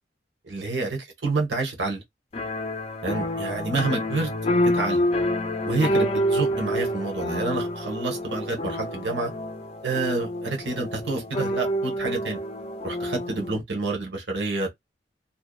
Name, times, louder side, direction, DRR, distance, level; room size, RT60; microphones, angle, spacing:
voice 1, 0.4-2.0 3.0-4.3 4.7-5.0 5.7-9.3 9.8-12.4 12.8-14.7, right 3 dB, 80° right, 1.0 m, -28 dB
sound 1, 2.3-13.6, equal, 35° left, 0.4 m, -28 dB
2.6 x 2.1 x 2.3 m
head